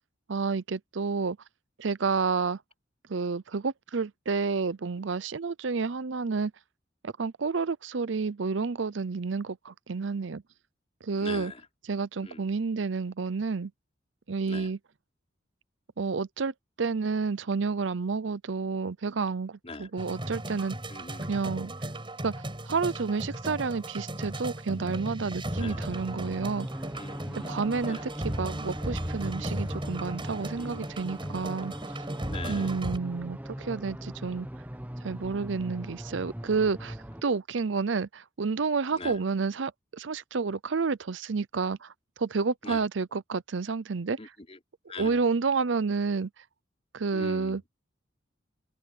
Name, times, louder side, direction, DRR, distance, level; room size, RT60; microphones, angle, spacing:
voice 1, 0.3-1.4 1.8-2.6 3.1-6.5 7.0-10.4 11.0-11.5 11.8-13.7 14.3-14.8 16.0-20.8 21.3-21.7 22.2-22.3 22.7-26.7 27.4-31.7 32.5-34.5 35.0-37.0 37.2-41.9 42.2-44.2 45.0-46.3 46.9-47.6, right 4 dB, 70° right, 0.6 m, -30 dB
voice 2, 11.2-11.6 12.2-12.5 14.5-14.7 19.6-19.9 20.9-21.3 25.6-25.8 26.9-28.0 30.6-30.8 32.3-32.7 38.9-39.2 42.6-42.8 44.2-44.6 44.9-45.2 47.1-47.6, left 3 dB, 35° left, 4.3 m, -41 dB
sound 1, 20.0-33.0, right 1 dB, 25° right, 5.3 m, -36 dB
sound 2, 25.5-37.2, equal, 10° right, 1.1 m, -40 dB
open air
head